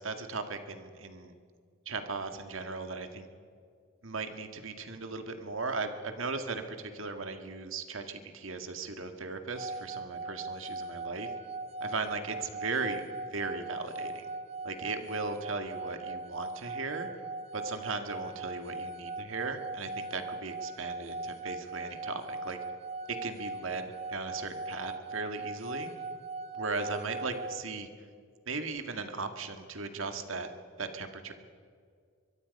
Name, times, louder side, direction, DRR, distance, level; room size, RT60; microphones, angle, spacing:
voice 1, 0.0-1.3 1.9-3.3 4.0-11.3 11.8-13.0 13.3-14.2 14.6-17.1 17.5-22.6 23.1-25.9 26.6-27.9 28.5-30.5 30.8-31.3, right 3 dB, 70° right, 7 dB, 1.9 m, -37 dB
sound 1, 9.6-27.6, right 3 dB, 30° right, 0.8 m, -40 dB
23.5 x 23.0 x 5.4 m, 2.1 s
head